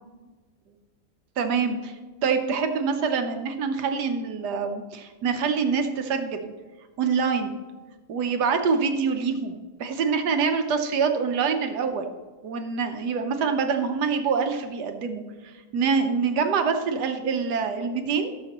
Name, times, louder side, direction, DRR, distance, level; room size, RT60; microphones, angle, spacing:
voice 1, 1.4-6.5 7.0-7.6 8.1-12.1 12.4-18.3, right 5 dB, 80° right, 6 dB, 1.5 m, -25 dB
15.5 x 7.0 x 3.0 m, 1.3 s
omnidirectional pair, 1.7 m